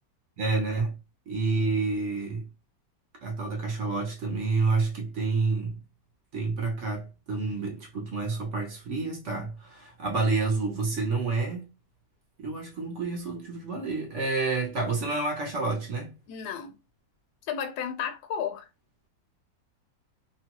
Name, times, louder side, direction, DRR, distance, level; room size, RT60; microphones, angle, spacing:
voice 1, 0.4-0.9 1.3-2.4 3.2-5.7 6.3-11.7 12.4-16.1, right 3 dB, 55° right, 0.9 m, -29 dB
voice 2, 16.3-16.8 17.5-18.7, left 8 dB, 70° left, 1.0 m, -33 dB
2.9 x 2.2 x 2.9 m
omnidirectional pair, 1.9 m